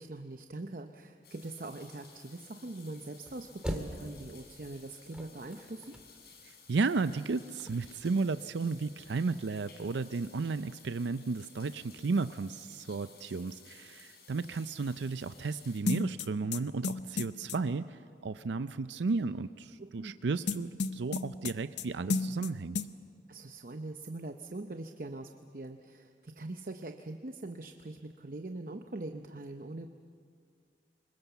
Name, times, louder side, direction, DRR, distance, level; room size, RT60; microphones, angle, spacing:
voice 1, 0.0-6.0 19.8-20.2 23.3-29.9, right 2 dB, 50° right, 6 dB, 0.8 m, -42 dB
sound 1, 1.2-15.8, left 5 dB, 60° left, 4.4 m, -56 dB
sound 2, 3.2-4.5 4.9-6.4 6.7-6.8 7.0-7.1 7.5-8.0, equal, 5° right, 1.9 m, -41 dB
voice 2, 6.4-22.8, right 4 dB, 80° right, 12 dB, 0.5 m, -33 dB
sound 3, 15.9-17.6 20.5-21.8 22.1-22.5 22.7-22.9, left 4 dB, 80° left, 0.8 m, -32 dB
25.5 x 22.0 x 7.1 m, 2.2 s
head